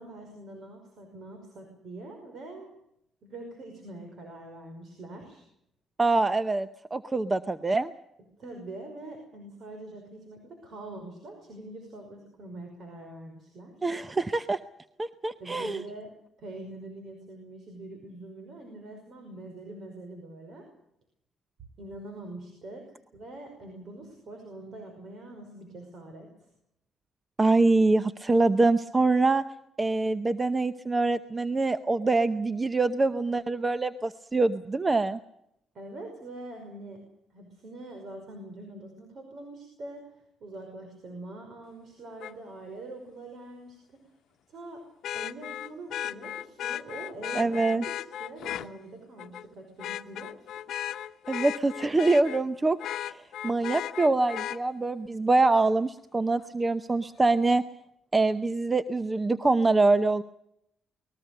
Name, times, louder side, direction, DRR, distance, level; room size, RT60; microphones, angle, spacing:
voice 1, 0.0-2.7 3.2-5.4 8.4-13.7 15.4-16.1 16.4-20.6 21.8-26.5 35.7-37.0 37.3-44.0 44.5-44.8 45.1-50.5, right 2 dB, 60° right, 4 dB, 5.4 m, -44 dB
voice 2, 6.0-7.9 13.8-14.6 15.0-15.8 27.4-29.4 29.8-35.2 47.3-47.8 51.3-52.8 53.0-53.2 53.4-57.6 58.1-60.2, right 3 dB, 25° right, 13 dB, 0.8 m, -24 dB
Vehicle horn car horn honking, 42.2-42.3 45.0-48.7 49.2-49.4 49.8-52.4 52.8-54.6 56.4-56.5, left 11 dB, 75° left, 0.9 m, -36 dB
22.5 x 20.5 x 6.7 m, 0.79 s
cardioid pair, 90°, 0 cm